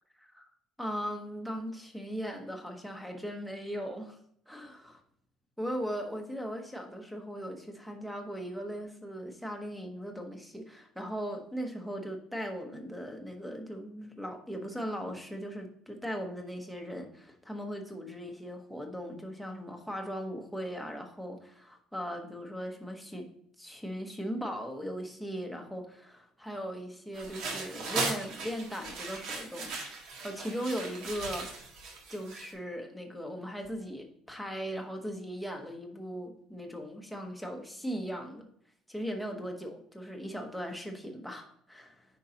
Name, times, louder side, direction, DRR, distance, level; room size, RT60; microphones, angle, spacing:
voice 1, 0.8-4.2 4.5-5.0 5.6-23.3 23.6-29.7 30.2-31.7 32.1-38.5 38.9-42.1, equal, ahead, 4 dB, 1.0 m, -38 dB
sound 1, 27.1-32.5, right 4 dB, 65° right, 1.7 m, -38 dB
9.0 x 5.3 x 2.8 m, 0.69 s
cardioid pair, 170°, 0 cm